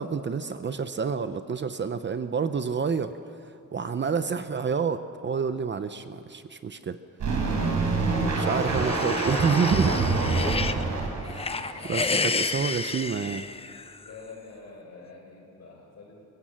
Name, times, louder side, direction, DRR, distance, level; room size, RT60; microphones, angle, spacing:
voice 1, 0.0-3.1 3.7-7.0 8.4-10.0 11.3-13.4, right 5 dB, 35° right, 10 dB, 0.7 m, -28 dB
sound 1, 7.2-12.1 12.6-12.7, right 3 dB, 65° right, 4.1 m, -26 dB
sound 2, 8.1-10.8 11.2-14.1, left 4 dB, 20° left, 0.6 m, -31 dB
voice 2, 14.0-16.3, left 4 dB, 55° left, 0 dB, 6.4 m, -46 dB
29.5 x 16.5 x 7.6 m, 2.6 s
wide cardioid pair, 160°, 31 cm